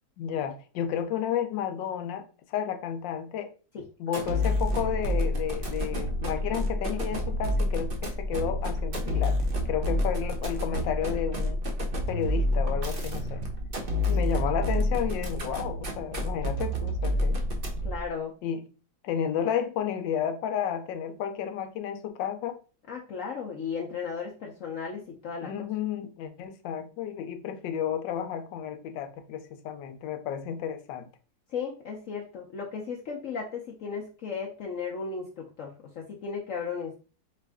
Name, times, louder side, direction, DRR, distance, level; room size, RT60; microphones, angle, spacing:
voice 1, 0.2-3.5 4.0-9.3 9.6-11.6 12.1-13.4 14.1-17.4 18.4-18.6 19.0-22.6 25.4-31.1, left 9 dB, 80° left, 1.3 m, -32 dB
sound 1, 4.1-18.0, left 1 dB, 45° right, 0.7 m, -28 dB
voice 2, 17.8-18.3 22.9-25.5 31.5-37.0, left 5 dB, 65° left, 0.8 m, -35 dB
5.3 x 2.5 x 3.4 m
omnidirectional pair, 2.0 m